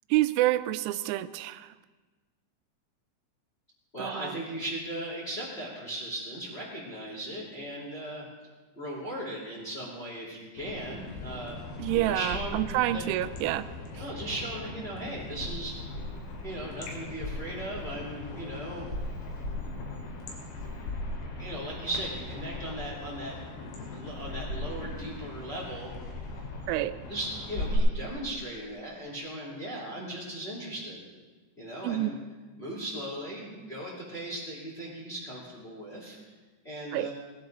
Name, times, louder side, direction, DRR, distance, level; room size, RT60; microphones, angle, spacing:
voice 1, 0.1-1.7 4.0-4.4 11.8-13.7 14.0-14.1 26.7-27.0 31.8-32.1 36.9-37.1, right 15 dB, 90° right, 14 dB, 3.0 m, -28 dB
voice 2, 3.9-8.3 8.8-11.6 11.9-12.6 12.9-13.0 13.9-15.7 16.4-18.9 21.4-23.3 23.9-25.9 27.1-31.0 31.6-32.1 32.6-36.2 36.6-37.1, right 1 dB, 20° left, -4 dB, 2.2 m, -37 dB
sound 1, 10.6-27.8, left 2 dB, 80° left, 4.8 m, -39 dB
19.5 x 11.5 x 4.0 m, 1.3 s
omnidirectional pair, 5.5 m